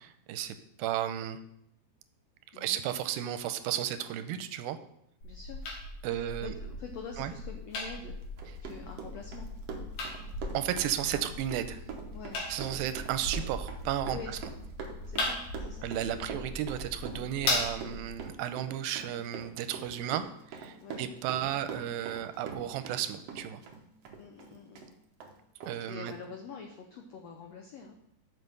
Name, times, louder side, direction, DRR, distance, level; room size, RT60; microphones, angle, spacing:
voice 1, 0.0-1.4 2.5-4.8 6.0-6.5 7.2-7.3 10.5-11.8 12.5-14.4 15.8-20.2 20.5-23.6 25.7-26.1, right 11 dB, 85° right, 10 dB, 2.4 m, -34 dB
voice 2, 5.2-5.6 6.1-8.2 8.6-9.5 12.1-12.4 14.1-14.4 15.1-15.9 16.1-16.4 20.8-21.0 24.2-24.9 25.9-28.0, left 5 dB, 85° left, 3 dB, 1.4 m, -45 dB
sound 1, 5.2-18.2, left 2 dB, 60° left, 2.9 m, -38 dB
Run, 8.2-23.0 23.3-24.9 25.2-25.3 25.6-25.8 26.1-26.2, right 5 dB, 65° right, 1.7 m, -43 dB
7.4 x 5.9 x 6.6 m, 0.75 s
omnidirectional pair, 4.1 m